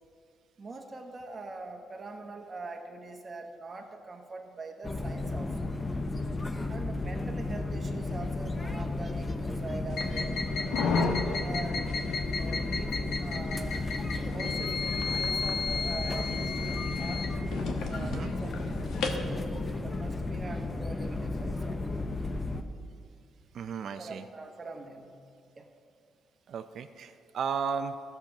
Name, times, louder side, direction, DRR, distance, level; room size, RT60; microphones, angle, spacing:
voice 1, 0.6-5.7 6.7-10.4 10.8-11.9 12.4-13.8 14.3-17.3 17.8-22.1 24.0-25.1 25.6-25.7, right 3 dB, 35° right, 2 dB, 1.3 m, -43 dB
sound 1, 4.8-22.6, left 2 dB, 20° left, 0.8 m, -33 dB
sound 2, 9.9-19.2, left 4 dB, 75° left, 1.2 m, -33 dB
voice 2, 18.0-18.3 23.5-24.2 26.5-27.9, right 6 dB, 60° right, 9 dB, 0.5 m, -34 dB
14.5 x 6.8 x 5.8 m, 2.2 s
cardioid pair, 90°, 0 cm